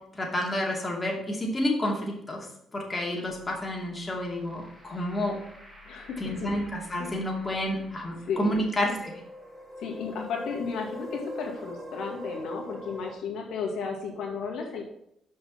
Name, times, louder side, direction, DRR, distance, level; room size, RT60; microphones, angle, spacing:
voice 1, 0.1-2.4 2.7-5.3 6.2-9.1, left 1 dB, 20° left, -1 dB, 2.4 m, -29 dB
sound 1, 3.3-13.1, left 1 dB, 15° right, 2.0 m, -44 dB
voice 2, 5.8-6.5 7.0-7.2 8.2-8.6 9.8-14.8, left 5 dB, 75° left, 0 dB, 2.1 m, -34 dB
6.6 x 5.5 x 5.9 m, 0.77 s
cardioid pair, 90°, 0 cm